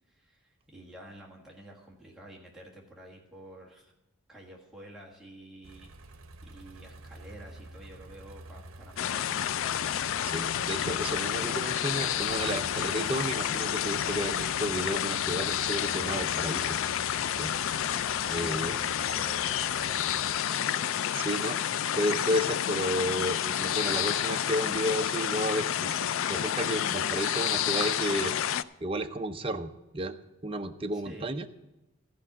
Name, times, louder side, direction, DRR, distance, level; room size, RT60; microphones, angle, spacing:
voice 1, 0.1-3.9 4.3-6.1 6.4-9.4 17.9-21.1 30.9-31.3, right 1 dB, ahead, -3 dB, 1.5 m, -49 dB
sound 1, 5.6-20.4, right 2 dB, 75° right, 0.8 m, -49 dB
sound 2, 9.0-28.6, left 10 dB, 65° left, 0.3 m, -30 dB
voice 2, 10.2-16.8 17.4-17.9 18.3-18.7 21.1-21.6 22.0-28.3 28.8-30.1 30.4-31.5, equal, 25° right, 5 dB, 0.6 m, -32 dB
14.0 x 5.4 x 7.3 m, 0.98 s
head